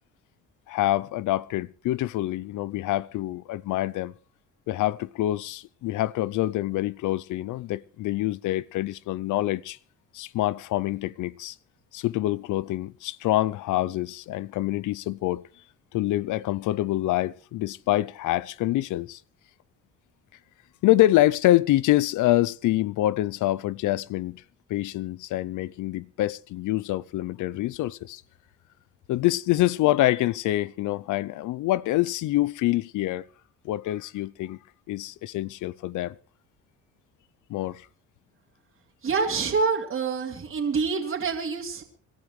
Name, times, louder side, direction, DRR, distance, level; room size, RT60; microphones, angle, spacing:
voice 1, 0.7-4.1 4.7-9.8 10.1-11.6 11.9-15.5 15.9-19.2 20.8-24.4 24.7-28.2 29.1-33.3 33.6-34.6 34.9-36.2 37.5-37.9, left 15 dB, 80° left, 0.6 m, -26 dB
voice 2, 39.0-41.8, right 5 dB, 45° right, 2.8 m, -26 dB
25.5 x 12.5 x 3.2 m
cardioid pair, 90°, 30 cm